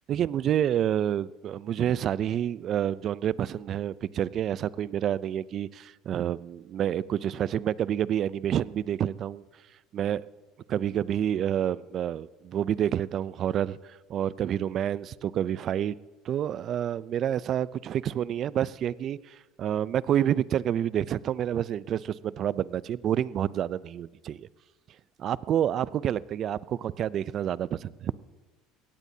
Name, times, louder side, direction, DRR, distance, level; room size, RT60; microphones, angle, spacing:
voice 1, 0.1-9.4 9.9-10.2 10.7-13.8 14.1-16.0 16.2-24.5 25.2-28.1, right 10 dB, 50° right, 0.4 m, -28 dB
22.5 x 17.5 x 2.8 m
supercardioid pair, 90°, 0 cm